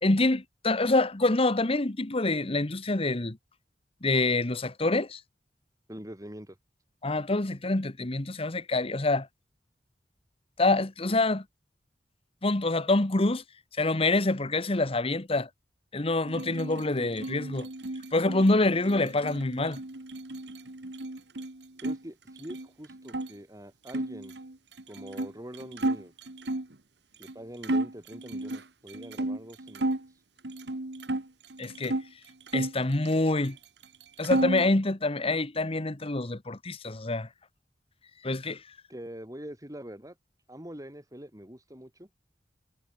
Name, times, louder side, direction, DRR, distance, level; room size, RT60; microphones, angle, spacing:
voice 1, 0.0-3.4 4.0-5.2 7.0-9.3 10.6-11.4 12.4-13.4 13.8-15.5 15.9-17.7 18.1-19.8 31.6-32.0 32.5-33.6 34.2-37.3 38.2-38.6, left 2 dB, 35° left, 1.2 m, -26 dB
voice 2, 5.9-6.6 21.8-24.3 24.9-26.1 27.2-29.9 38.9-40.1 40.5-42.1, equal, 20° right, 5.1 m, -44 dB
sound 1, 16.3-22.0 22.3-23.3 23.9-26.7 27.2-27.3 27.6-30.1 30.4-32.1 32.5-33.6 33.8-34.7, right 1 dB, 70° right, 1.7 m, -33 dB
head